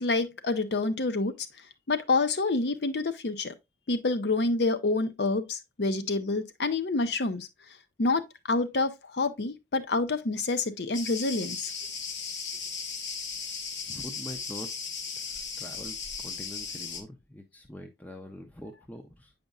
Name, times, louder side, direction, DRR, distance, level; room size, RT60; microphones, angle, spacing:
voice 1, 0.0-3.5 3.9-11.7, left 3 dB, 70° left, 0.6 m, -28 dB
Cricket, 10.9-17.0, left 5 dB, 90° left, 1.0 m, -36 dB
voice 2, 13.9-14.7 15.2-19.3, left 1 dB, 10° left, 0.5 m, -44 dB
8.1 x 5.1 x 2.3 m
head